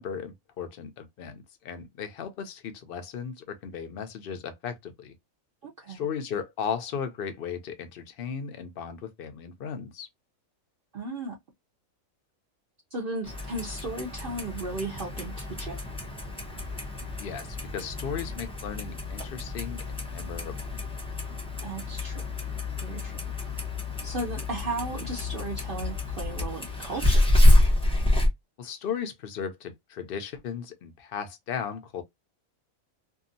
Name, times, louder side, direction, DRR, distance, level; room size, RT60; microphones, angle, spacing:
voice 1, 0.0-5.1 5.9-10.1 17.2-20.7 28.6-32.0, left 7 dB, 55° left, 0.7 m, -36 dB
voice 2, 5.6-6.0 10.9-11.4 12.9-15.8 21.6-22.2 22.8-23.1 23.5-23.6 24.0-27.3, right 2 dB, 55° right, 0.6 m, -35 dB
Clock, 13.2-28.3, left 1 dB, 5° left, 0.6 m, -27 dB
2.7 x 2.4 x 2.5 m
omnidirectional pair, 1.4 m